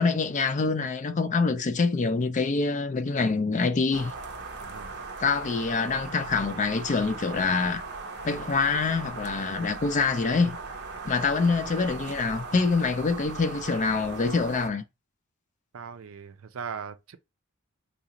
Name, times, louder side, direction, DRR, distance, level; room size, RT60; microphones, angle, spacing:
voice 1, 0.0-4.1 5.2-7.8 8.2-10.6 11.0-14.8, left 4 dB, 35° left, 0.4 m, -25 dB
sound 1, 3.9-14.7, right 3 dB, 50° right, 0.8 m, -38 dB
voice 2, 4.6-5.0 15.7-17.2, right 6 dB, 70° right, 0.5 m, -39 dB
4.0 x 2.5 x 2.9 m
head